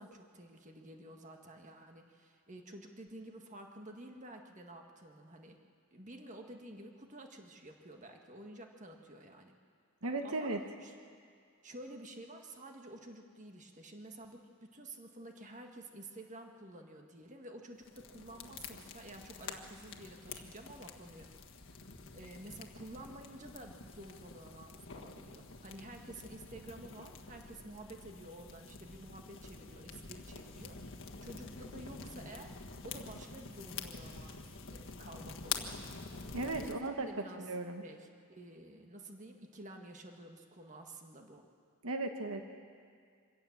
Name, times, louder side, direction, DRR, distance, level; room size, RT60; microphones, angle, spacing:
voice 1, 0.0-5.6 5.9-9.6 10.0-10.5 10.8-10.9 11.6-21.3 21.6-30.8 31.2-32.5 32.8-35.8 36.3-37.4 37.8-41.4, right 1 dB, 35° right, 3 dB, 1.7 m, -51 dB
voice 2, 10.0-10.6 36.3-37.1 37.4-37.8 41.8-42.6, right 2 dB, 70° right, 5 dB, 1.3 m, -36 dB
sound 1, 17.8-36.8, left 5 dB, 60° left, 1.5 m, -47 dB
25.0 x 17.0 x 7.3 m, 2.2 s
head